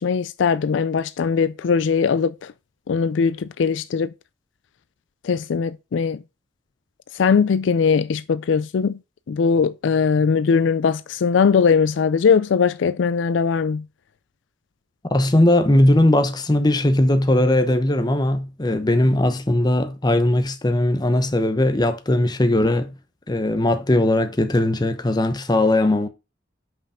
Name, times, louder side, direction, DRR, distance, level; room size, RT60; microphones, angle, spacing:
voice 1, 0.0-2.3 2.9-4.1 5.2-6.2 7.2-8.9 9.3-13.8, left 6 dB, 75° left, 0.4 m, -20 dB
voice 2, 15.1-22.9 23.3-26.1, left 1 dB, 20° left, 0.9 m, -19 dB
5.6 x 5.5 x 5.0 m
head